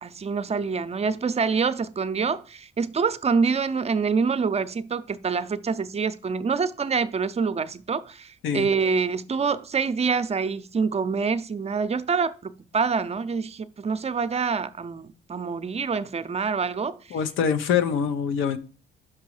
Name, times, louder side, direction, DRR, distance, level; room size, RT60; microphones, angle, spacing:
voice 1, 0.0-17.0, right 5 dB, 30° right, 0.5 m, -26 dB
voice 2, 17.1-18.6, left 7 dB, 85° left, 0.8 m, -24 dB
6.0 x 5.1 x 4.8 m
cardioid pair, 90°, 20 cm